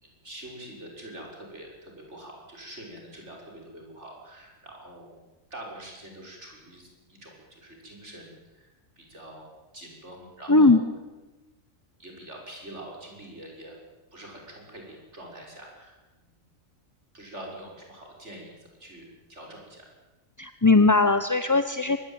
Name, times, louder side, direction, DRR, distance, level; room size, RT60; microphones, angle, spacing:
voice 1, 0.0-5.1 5.5-8.7 9.0-9.5 9.7-10.8 12.0-13.8 14.1-16.3 17.1-19.9, right 1 dB, 55° right, 0 dB, 6.4 m, -45 dB
voice 2, 10.5-10.8 20.4-22.0, left 3 dB, 15° left, 10 dB, 0.7 m, -19 dB
24.5 x 19.5 x 9.0 m, 1.1 s
omnidirectional pair, 1.4 m